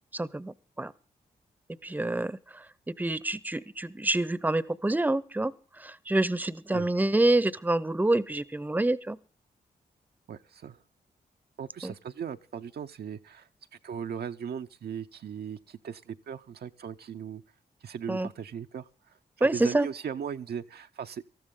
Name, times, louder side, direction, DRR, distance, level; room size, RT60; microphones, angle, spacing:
voice 1, 0.1-0.9 1.8-2.4 3.0-5.5 5.8-9.2 11.8-11.9 18.1-18.3 19.4-19.9, right 2 dB, 10° right, 18 dB, 0.7 m, -27 dB
voice 2, 10.3-10.8 11.6-13.5 13.8-17.4 17.8-21.2, right 8 dB, 65° right, 7 dB, 0.6 m, -38 dB
19.0 x 13.5 x 3.7 m, 0.36 s
supercardioid pair, 45°, 18 cm